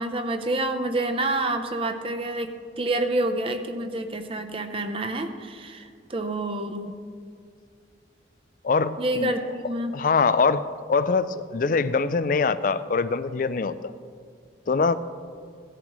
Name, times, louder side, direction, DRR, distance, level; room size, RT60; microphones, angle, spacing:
voice 1, 0.0-7.0 9.0-10.0, right 2 dB, 30° right, 7 dB, 0.6 m, -28 dB
voice 2, 8.6-9.3 9.9-13.9 14.7-15.0, left 4 dB, 45° left, 14 dB, 0.4 m, -23 dB
17.5 x 11.0 x 3.1 m, 2.2 s
head